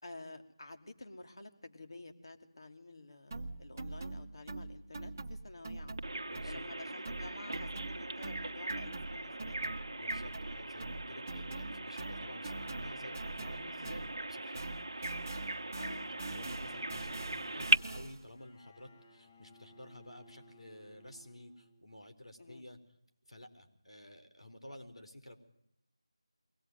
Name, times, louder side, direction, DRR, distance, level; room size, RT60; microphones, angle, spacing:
voice 1, 0.0-6.0 6.4-9.7 15.8-16.1 22.4-22.6, left 2 dB, 55° left, 5 dB, 2.8 m, -50 dB
sound 1, 3.3-6.8 7.0-14.3 14.5-18.3, right 2 dB, 20° right, 1.3 m, -44 dB
Bird vocalization bird call bird song, 6.0-17.8, right 2 dB, 50° right, 1.1 m, -38 dB
voice 2, 6.3-6.6 10.0-22.8 23.3-25.4, left 1 dB, 85° left, 7 dB, 3.9 m, -52 dB
Bowed string instrument, 16.0-22.1, equal, 25° left, 1.6 m, -60 dB
23.5 x 18.0 x 9.3 m, 0.76 s
figure-of-eight pair, 165°, 3 cm